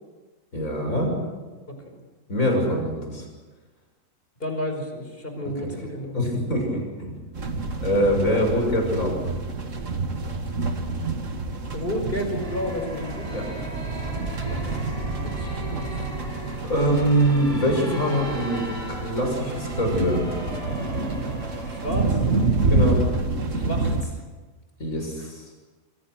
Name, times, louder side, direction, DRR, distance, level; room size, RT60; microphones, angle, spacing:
voice 1, 0.5-1.2 2.3-3.3 5.6-5.7 6.1-7.1 7.8-9.2 13.3-13.4 16.6-20.3 22.7-23.0 24.8-25.5, equal, 70° left, 2 dB, 6.9 m, -23 dB
voice 2, 4.4-6.2 11.7-13.3 14.4-14.8 15.2-15.9 21.6-22.2 23.5-24.2 25.2-25.3, equal, 40° left, 4 dB, 5.2 m, -31 dB
sound 1, 7.3-24.0, right 3 dB, 65° right, 2.1 m, -28 dB
sound 2, 12.4-22.8, equal, 25° right, 6.6 m, -38 dB
27.5 x 25.0 x 6.3 m, 1.3 s
omnidirectional pair, 1.4 m